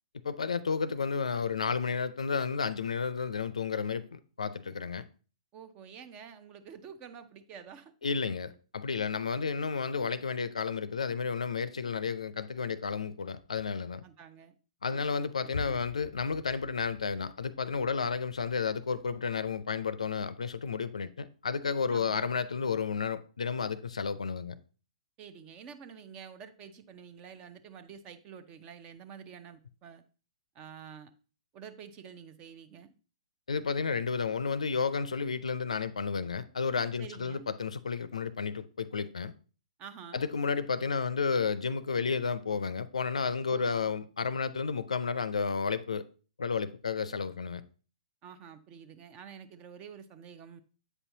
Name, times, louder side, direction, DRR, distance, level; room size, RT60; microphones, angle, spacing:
voice 1, 0.2-5.0 8.0-14.0 14.8-24.5 33.5-39.3 40.1-46.0 46.4-47.6, left 5 dB, 75° left, 0.5 m, -32 dB
voice 2, 5.5-7.9 14.0-14.5 14.9-15.8 21.9-22.3 25.2-30.0 30.5-31.1 31.5-32.9 37.0-37.5 39.8-40.3 43.5-43.9 48.2-50.6, right 7 dB, 30° right, 0.6 m, -49 dB
8.1 x 5.6 x 2.7 m
figure-of-eight pair, 120°, 4 cm